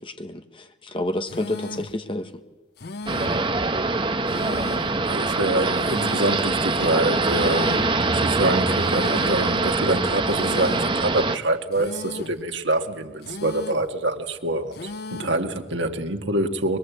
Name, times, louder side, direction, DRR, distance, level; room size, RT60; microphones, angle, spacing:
voice 1, 0.0-2.4, left 1 dB, 30° left, 1.4 m, -30 dB
sound 1, 1.3-2.0 2.8-3.5 4.3-5.0 5.8-6.5 7.3-8.0 8.8-9.5 10.3-11.0 11.7-12.4 13.2-13.9 14.7-15.4, left 2 dB, 60° left, 0.7 m, -36 dB
sound 2, 3.1-11.4, right 3 dB, 25° right, 1.0 m, -23 dB
sound 3, 3.6-4.3 5.8-6.0 6.4-7.6, left 1 dB, 75° left, 6.5 m, -44 dB
voice 2, 5.1-16.8, right 2 dB, 80° right, 1.9 m, -25 dB
24.0 x 21.5 x 8.3 m
head